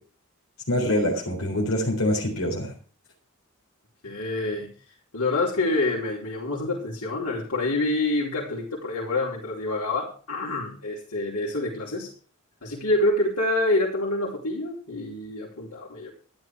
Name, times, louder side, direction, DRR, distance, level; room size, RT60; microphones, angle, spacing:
voice 1, 0.7-2.7, left 1 dB, 65° left, -1 dB, 4.0 m, -25 dB
voice 2, 4.0-4.7 5.1-12.1 12.6-16.1, left 2 dB, 85° left, -5 dB, 4.4 m, -27 dB
13.0 x 11.5 x 4.7 m, 0.41 s
head